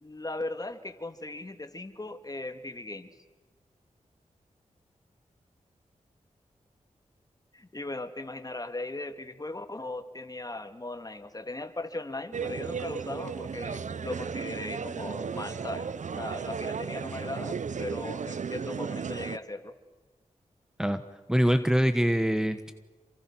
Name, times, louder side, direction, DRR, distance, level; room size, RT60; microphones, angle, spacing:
voice 1, 0.0-3.1 7.5-19.7, left 2 dB, 30° left, 8 dB, 2.4 m, -38 dB
sound 1, 12.3-19.4, right 6 dB, 65° right, 0.8 m, -35 dB
voice 2, 21.3-22.7, equal, 5° right, 9 dB, 1.3 m, -24 dB
28.5 x 26.0 x 6.3 m, 1.3 s
cardioid pair, 50°, 14 cm